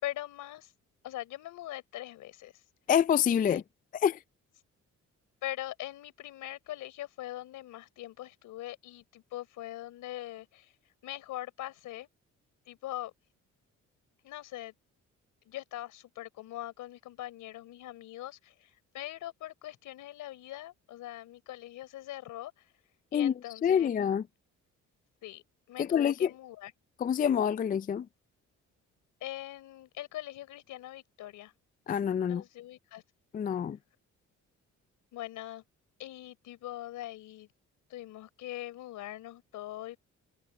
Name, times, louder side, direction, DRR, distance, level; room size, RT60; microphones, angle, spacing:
voice 1, 0.0-0.7 1.0-2.5 3.3-3.6 5.4-10.7 11.0-12.1 12.7-13.1 14.2-14.7 15.5-22.5 23.1-23.9 25.2-25.4 25.7-26.7 29.2-31.5 32.3-33.0 35.1-35.6 36.0-37.5 37.9-40.0, left 14 dB, 85° left, 4.4 m, -42 dB
voice 2, 2.9-3.6 3.9-4.2 23.1-23.3 23.6-24.2 25.8-26.3 27.0-28.1 31.9-32.4 33.3-33.8, left 8 dB, 30° left, 0.4 m, -26 dB
cardioid pair, 90°, 30 cm